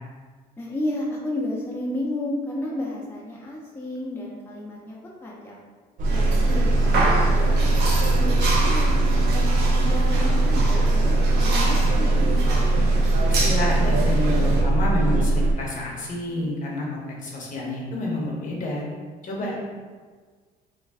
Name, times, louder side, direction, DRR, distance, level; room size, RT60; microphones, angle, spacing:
voice 1, 0.6-5.6 6.1-8.9 9.3-12.2 19.4-19.6, left 1 dB, 10° left, -5 dB, 0.5 m, -32 dB
sound 1, 6.0-15.5, right 2 dB, 50° right, 0.4 m, -20 dB
sound 2, 6.0-14.6, right 2 dB, 80° right, 0.8 m, -28 dB
voice 2, 13.3-18.8 19.2-19.6, left 2 dB, 50° left, -3 dB, 0.9 m, -29 dB
3.3 x 2.2 x 3.5 m, 1.5 s
cardioid pair, 110°, 17 cm